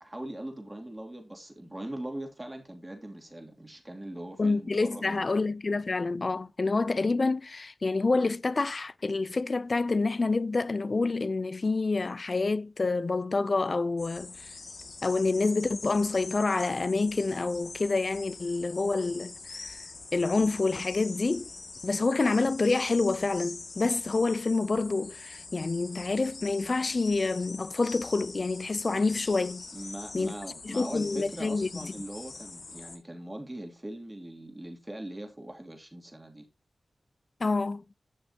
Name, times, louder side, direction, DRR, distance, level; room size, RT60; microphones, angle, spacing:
voice 1, 0.0-5.4 29.7-36.5, right 1 dB, 20° right, 2.7 m, -41 dB
voice 2, 4.4-14.5 15.0-19.3 19.6-19.8 20.1-21.5 21.8-29.6 30.1-30.3 30.6-31.7 37.4-37.8, left 3 dB, 55° left, 0.5 m, -27 dB
sound 1, 14.0-33.0, left 3 dB, 70° left, 2.1 m, -44 dB
12.0 x 6.5 x 2.9 m
cardioid pair, 50°, 0 cm